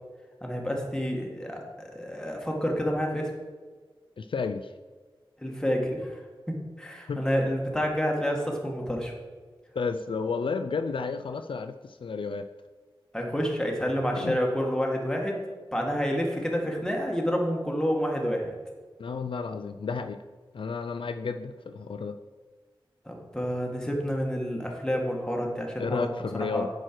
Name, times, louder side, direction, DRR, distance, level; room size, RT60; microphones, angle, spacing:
voice 1, 0.4-3.3 5.4-6.2 6.5-9.1 13.1-15.4 15.7-18.5 23.0-26.0 26.5-26.7, equal, 5° left, 0 dB, 1.6 m, -29 dB
voice 2, 4.2-4.7 7.1-7.2 9.8-12.5 14.2-14.4 19.0-20.2 20.5-22.2 25.8-26.7, left 5 dB, 70° left, 8 dB, 0.3 m, -32 dB
9.0 x 6.3 x 4.5 m, 1.5 s
wide cardioid pair, 90°, 9 cm